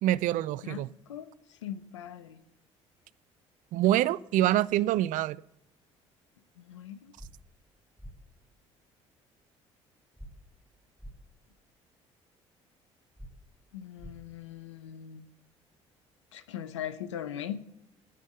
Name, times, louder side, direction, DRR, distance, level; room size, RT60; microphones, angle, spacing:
voice 1, 0.0-0.9 3.7-5.4, right 13 dB, 60° right, 20 dB, 0.5 m, -25 dB
voice 2, 0.6-2.4 6.6-7.1 13.7-15.3 16.3-17.6, left 10 dB, 85° left, 13 dB, 0.8 m, -40 dB
sound 1, 7.2-7.3 8.0-8.1 10.2-10.3 11.0-11.1 13.2-13.3 14.0-14.1, right 1 dB, 5° right, 2.4 m, -44 dB
16.0 x 5.4 x 7.8 m, 0.83 s
hypercardioid pair, 55°, 15 cm